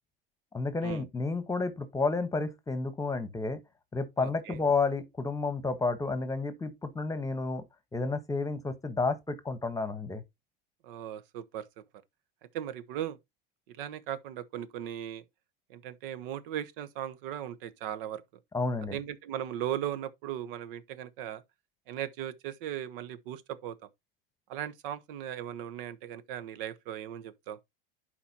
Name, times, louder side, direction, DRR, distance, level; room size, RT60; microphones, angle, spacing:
voice 1, 0.5-3.6 3.9-7.6 7.9-10.2 18.5-19.0, left 3 dB, 10° left, 1.2 m, -31 dB
voice 2, 4.2-4.6 10.8-11.6 12.5-13.2 13.7-15.2 15.7-18.2 18.9-21.4 21.9-23.7 24.5-27.6, right 11 dB, 65° right, 1.1 m, -37 dB
11.0 x 4.4 x 2.8 m
hypercardioid pair, 110°, 29 cm